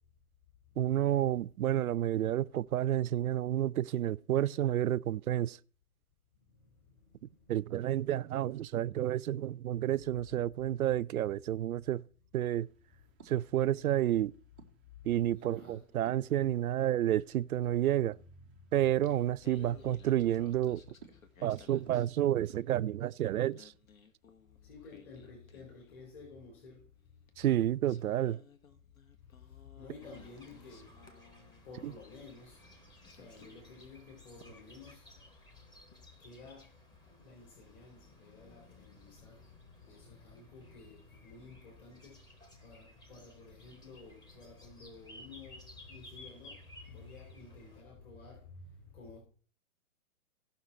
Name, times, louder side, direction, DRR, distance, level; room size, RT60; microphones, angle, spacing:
voice 1, 0.8-5.6 7.5-12.0 12.3-12.7 13.3-14.3 15.0-18.2 18.7-20.8 21.4-23.7 27.4-28.4, right 12 dB, 75° right, 0.5 m, -30 dB
sound 1, 12.6-22.5, right 6 dB, 10° right, 0.4 m, -61 dB
voice 2, 15.3-15.8 18.9-19.2 19.6-19.9 24.7-26.8 29.8-30.9 31.6-32.6 33.2-35.0 36.2-36.6 37.2-39.4 39.8-42.2 42.6-46.6 46.9-48.7 48.9-49.2, left 4 dB, 40° left, 4.1 m, -52 dB
Singing, 19.0-22.7 23.0-26.3 27.3-27.4 27.8-32.0 32.6-32.8 33.0-33.8, left 5 dB, 70° left, 1.6 m, -60 dB
sound 2, 30.0-47.8, left 1 dB, 10° left, 1.0 m, -57 dB
16.5 x 5.8 x 4.3 m
hypercardioid pair, 135°, 43 cm